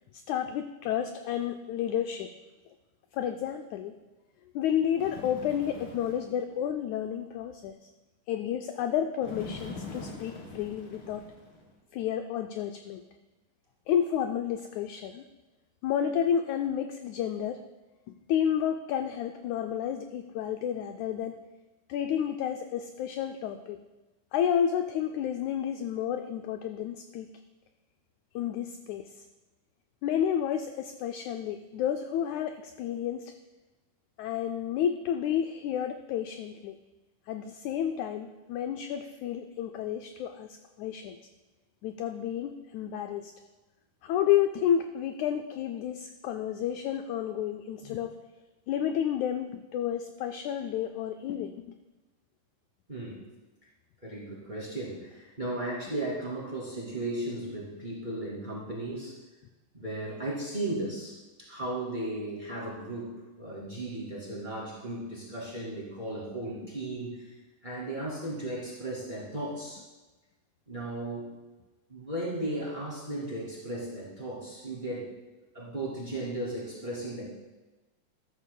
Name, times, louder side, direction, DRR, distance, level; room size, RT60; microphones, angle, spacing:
voice 1, 0.1-2.3 3.1-3.9 4.6-7.9 8.3-11.3 11.9-13.0 13.9-15.2 15.8-17.6 18.3-21.4 21.9-23.8 24.3-27.3 28.4-29.3 30.0-33.4 34.2-36.8 37.3-41.2 41.8-43.3 44.0-48.2 48.7-51.6, left 9 dB, 90° left, 6 dB, 1.6 m, -31 dB
Bird, 5.0-6.4 9.2-11.7, left 3 dB, 45° left, 2.4 m, -43 dB
voice 2, 52.9-53.2 54.0-59.2 59.7-67.3 67.6-69.8 70.7-71.3 71.9-75.1 75.5-77.2, right 1 dB, 15° right, -6 dB, 2.1 m, -36 dB
13.5 x 12.5 x 2.3 m, 1.1 s
omnidirectional pair, 3.8 m